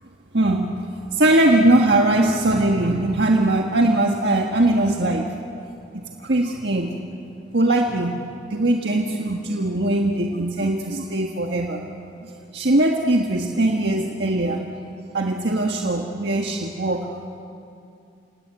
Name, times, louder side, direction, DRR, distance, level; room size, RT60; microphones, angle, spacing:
voice 1, 0.3-0.8 1.1-5.3 6.2-6.9 7.5-8.2 8.5-11.8 12.5-14.6 15.1-17.4, right 1 dB, 70° right, 1 dB, 1.6 m, -20 dB
29.5 x 17.5 x 9.4 m, 2.5 s
head